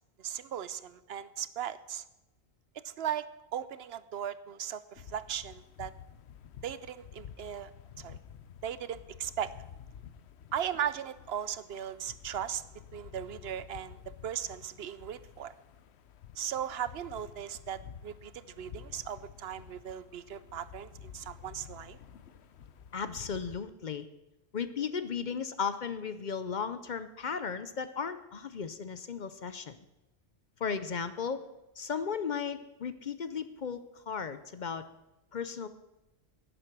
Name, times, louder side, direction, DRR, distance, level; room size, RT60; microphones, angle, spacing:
voice 1, 0.2-2.0 2.8-5.9 6.6-7.7 8.0-8.2 8.6-9.5 10.5-12.6 12.9-15.5 16.4-22.0, right 9 dB, 70° right, 15 dB, 0.8 m, -37 dB
sound 1, 5.0-23.6, left 8 dB, 80° left, 1.0 m, -51 dB
voice 2, 22.9-24.1 24.5-29.8 30.6-31.4 31.8-34.8 35.3-35.7, left 6 dB, 50° left, 12 dB, 0.7 m, -35 dB
11.5 x 10.0 x 6.0 m, 0.97 s
omnidirectional pair, 1.1 m